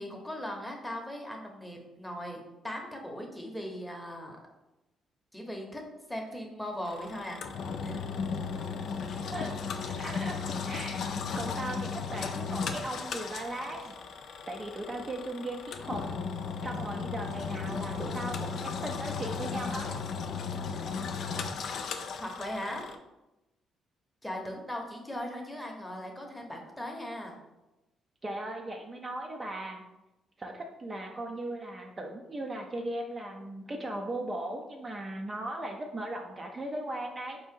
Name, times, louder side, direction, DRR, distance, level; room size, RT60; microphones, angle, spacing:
voice 1, 0.0-4.4 5.3-5.8 6.1-7.4 7.8-8.0 22.2-22.9 24.2-27.4, left 1 dB, 5° left, 1 dB, 0.8 m, -38 dB
Engine, 6.8-23.0, left 5 dB, 65° left, 0.4 m, -36 dB
voice 2, 9.9-14.0 14.5-16.0 16.6-19.9 28.2-29.8 30.4-37.4, right 1 dB, 30° right, 1 dB, 0.5 m, -38 dB
4.1 x 2.7 x 3.6 m, 0.98 s
cardioid pair, 90°, 0 cm